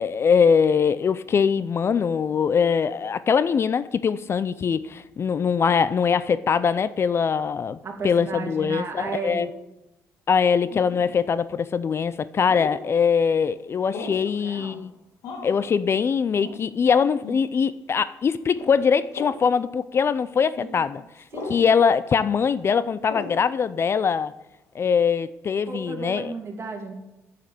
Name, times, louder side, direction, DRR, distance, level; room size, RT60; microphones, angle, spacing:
voice 1, 0.0-7.8 8.0-9.5 10.3-14.9 15.4-21.0 21.5-24.3 24.7-26.3, left 6 dB, 45° left, 16 dB, 0.4 m, -22 dB
voice 2, 7.8-9.5 14.0-14.9 21.3-21.8 25.6-26.9, right 5 dB, 45° right, 2 dB, 2.6 m, -34 dB
sound 1, 10.7-11.1 12.5-12.8 13.9-14.3 15.2-15.6 16.4-16.6 17.2-17.4 18.5-18.7 19.1-19.4 20.6-20.7 21.3-21.6 23.1-23.4, left 4 dB, 80° left, 2.2 m, -36 dB
7.5 x 7.3 x 8.3 m, 0.94 s
supercardioid pair, 70°, 6 cm